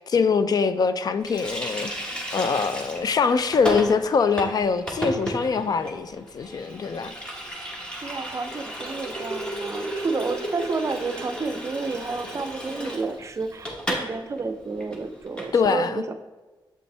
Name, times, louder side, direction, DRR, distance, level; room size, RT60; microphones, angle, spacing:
voice 1, 0.0-1.9 2.3-7.1 15.5-16.0, left 5 dB, 50° left, 12 dB, 0.4 m, -23 dB
Water tap faucet, 1.2-14.1 14.4-14.5 14.8-15.5, equal, 10° left, 1.2 m, -33 dB
voice 2, 8.0-16.1, right 4 dB, 35° right, 9 dB, 0.5 m, -30 dB
7.4 x 5.3 x 3.3 m, 1.2 s
cardioid pair, 100°, 8 cm